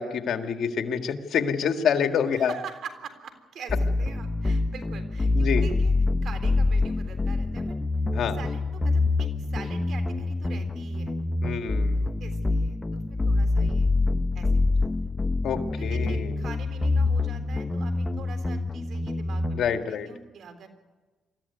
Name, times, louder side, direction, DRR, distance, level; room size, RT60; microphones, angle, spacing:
voice 1, 0.0-2.5 5.3-5.7 8.1-8.4 11.4-12.0 15.4-16.4 19.6-20.1, left 7 dB, 65° left, 6 dB, 1.8 m, -27 dB
voice 2, 2.3-5.9 6.2-7.8 8.3-11.1 11.9-13.9 14.4-14.9 15.8-20.7, right 6 dB, 65° right, 8 dB, 3.6 m, -44 dB
sound 1, 3.7-19.7, left 3 dB, 20° left, 0.9 m, -26 dB
24.0 x 14.5 x 9.5 m, 1.3 s
cardioid pair, 90°, 0 cm